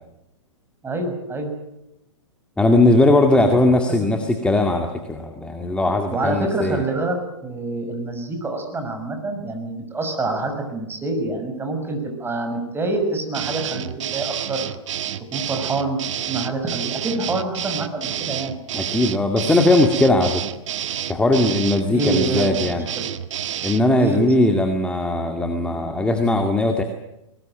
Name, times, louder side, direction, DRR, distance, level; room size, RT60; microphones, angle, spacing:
voice 1, 0.8-1.5 3.3-3.4 4.0-4.2 6.1-7.2 7.4-14.6 15.3-16.0 16.3-18.6 21.9-23.1 24.0-24.3, right 2 dB, 15° right, 5 dB, 6.4 m, -26 dB
voice 2, 2.6-6.8 18.7-20.4 21.1-22.8 23.6-26.8, left 2 dB, 5° left, 4 dB, 2.1 m, -19 dB
sound 1, 13.3-23.9, right 10 dB, 70° right, 1.6 m, -29 dB
22.5 x 19.5 x 9.1 m, 0.86 s
hypercardioid pair, 120°, 17 cm